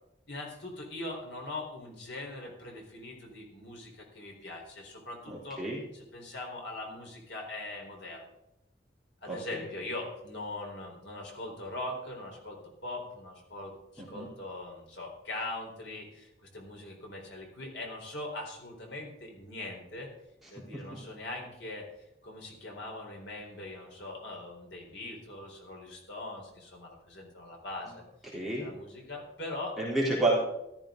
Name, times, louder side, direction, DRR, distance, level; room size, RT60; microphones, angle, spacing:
voice 1, 0.3-5.6 5.9-8.3 9.2-20.1 20.5-21.8 22.2-28.0 28.6-29.8, left 2 dB, 80° left, 0 dB, 4.4 m, -41 dB
voice 2, 5.3-5.8 9.3-9.7 14.0-14.3 20.7-21.0 28.3-28.6 29.8-30.4, right 2 dB, ahead, -8 dB, 3.7 m, -30 dB
14.5 x 13.5 x 3.9 m, 0.86 s
head